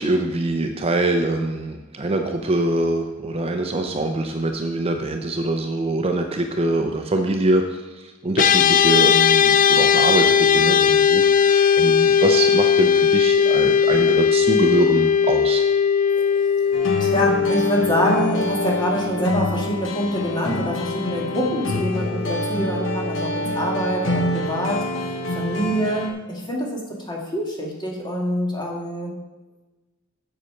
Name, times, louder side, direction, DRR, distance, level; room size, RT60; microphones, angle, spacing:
voice 1, 0.0-15.6, right 2 dB, 30° right, 4 dB, 0.6 m, -24 dB
sound 1, 8.4-19.8, left 7 dB, 40° left, 0.4 m, -18 dB
voice 2, 16.1-24.8 25.3-26.8 27.1-29.1, equal, 20° left, -2 dB, 1.8 m, -25 dB
sound 2, 16.7-26.1, left 1 dB, 65° left, 1.1 m, -26 dB
8.1 x 6.5 x 5.7 m, 1.1 s
head